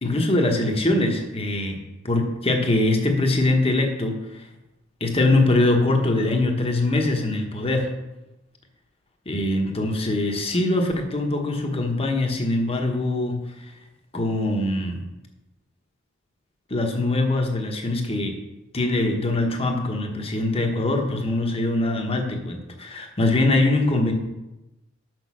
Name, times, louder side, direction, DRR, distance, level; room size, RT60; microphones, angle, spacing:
voice 1, 0.0-1.8 2.0-4.4 5.0-7.9 9.2-13.4 14.1-15.0 16.7-18.4 18.7-24.1, left 2 dB, 30° left, 3 dB, 1.2 m, -22 dB
6.4 x 6.2 x 6.2 m, 0.99 s
head